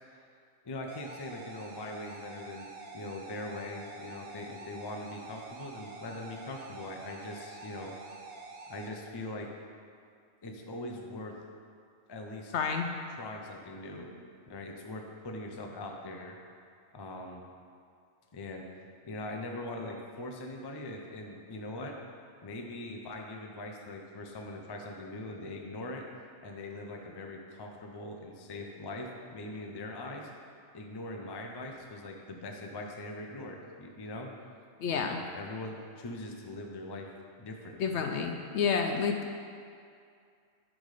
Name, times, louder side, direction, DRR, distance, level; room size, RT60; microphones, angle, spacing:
voice 1, 0.6-8.0 8.7-9.5 10.4-11.4 12.1-12.5 13.2-14.1 14.5-16.4 16.9-17.4 18.3-18.7 19.0-22.0 22.4-26.0 26.4-30.3 30.7-34.3 34.9-37.1 37.4-38.0, left 2 dB, 30° left, 1 dB, 0.4 m, -41 dB
sound 1, 0.9-8.9, right 3 dB, 55° right, 0.9 m, -47 dB
voice 2, 12.5-12.9 34.8-35.2 37.8-39.3, left 6 dB, 65° left, 3 dB, 0.8 m, -29 dB
10.5 x 3.7 x 4.9 m, 2.3 s
omnidirectional pair, 1.4 m